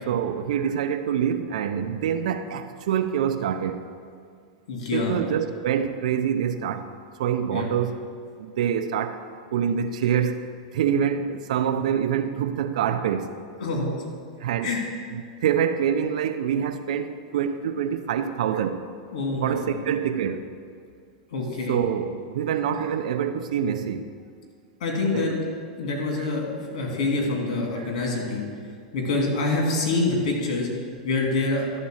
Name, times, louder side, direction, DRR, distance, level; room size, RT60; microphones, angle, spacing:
voice 1, 0.1-3.8 4.9-6.9 7.2-8.0 8.4-9.2 9.5-10.4 10.7-13.3 14.4-14.8 15.1-18.8 19.4-20.5 21.7-24.1 25.1-25.4 26.1-26.3 27.7-27.9, right 8 dB, 70° right, 10 dB, 0.6 m, -26 dB
voice 2, 4.7-5.1 7.5-7.7 13.6-14.0 14.6-14.8 19.1-19.8 21.3-21.8 24.8-25.3 25.8-28.5 28.9-30.7 31.0-31.7, left 3 dB, 65° left, 0 dB, 2.5 m, -26 dB
12.0 x 4.2 x 6.4 m, 2.1 s
hypercardioid pair, 135°, 4 cm